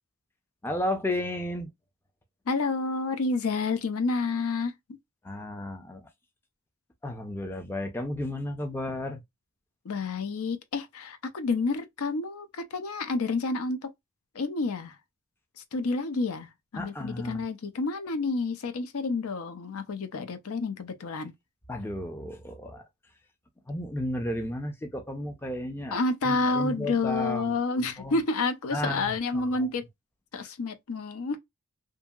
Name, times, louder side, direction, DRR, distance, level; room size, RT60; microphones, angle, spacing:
voice 1, 0.6-1.7 5.2-6.1 7.0-9.2 16.8-17.4 21.7-22.8 23.7-28.2 28.7-29.7 30.4-30.5, left 1 dB, 10° left, 0.4 m, -33 dB
voice 2, 2.5-4.7 9.8-13.8 14.3-15.0 15.7-21.3 25.9-29.8 30.3-31.4, left 3 dB, 75° left, 0.5 m, -29 dB
2.7 x 2.7 x 2.3 m
head